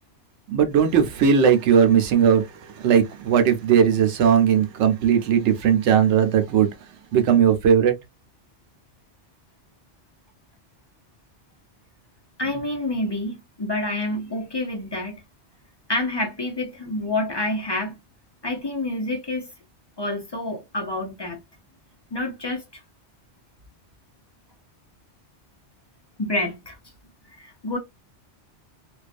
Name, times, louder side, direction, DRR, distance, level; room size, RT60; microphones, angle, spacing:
voice 1, 0.5-2.4 2.7-6.7 7.1-7.9, right 8 dB, 80° right, 0.9 m, -18 dB
voice 2, 12.4-15.2 15.9-18.0 18.4-19.5 20.0-21.4 22.1-22.8 26.2-26.8 27.4-27.8, left 2 dB, 30° left, 0.6 m, -28 dB
2.5 x 2.3 x 2.4 m
omnidirectional pair, 1.2 m